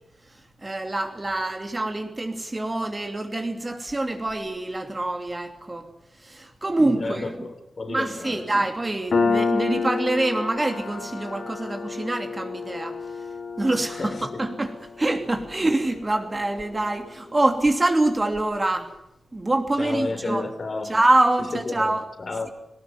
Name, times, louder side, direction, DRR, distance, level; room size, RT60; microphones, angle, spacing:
voice 1, 0.6-5.9 6.2-7.3 7.9-12.9 13.6-18.9 19.3-20.5 20.8-22.0, right 2 dB, 25° right, 2.9 m, -25 dB
voice 2, 7.0-8.6 13.9-14.3 19.8-20.9 21.5-22.5, left 3 dB, 50° left, 3.5 m, -32 dB
Piano, 9.1-16.3, left 4 dB, 75° left, 4.8 m, -29 dB
19.0 x 18.5 x 9.6 m
wide cardioid pair, 95°, 0 cm